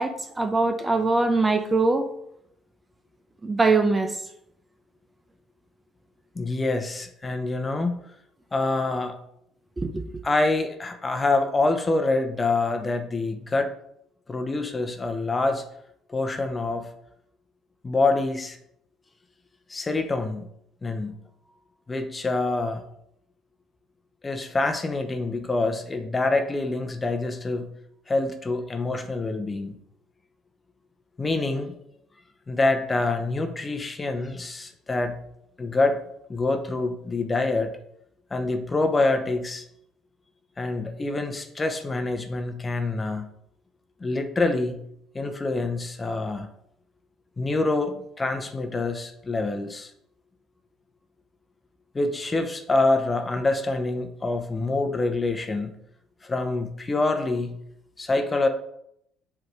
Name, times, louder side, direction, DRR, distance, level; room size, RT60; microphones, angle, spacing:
voice 1, 0.0-2.1 3.4-4.2 9.8-10.2, right 3 dB, 20° right, 7 dB, 0.9 m, -22 dB
voice 2, 6.3-8.0 8.5-9.2 10.2-13.7 14.3-15.6 16.1-16.9 17.8-18.6 19.7-20.4 20.8-21.1 21.9-22.8 24.2-27.7 28.1-29.7 31.2-31.7 32.5-35.2 35.6-36.0 36.3-37.7 38.3-39.6 40.6-43.3 44.0-44.8 45.1-46.5 47.4-49.9 51.9-55.7 56.2-57.6 58.0-58.5, left 2 dB, 25° left, 6 dB, 1.0 m, -26 dB
7.8 x 3.8 x 4.8 m, 0.74 s
hypercardioid pair, 55°, 0 cm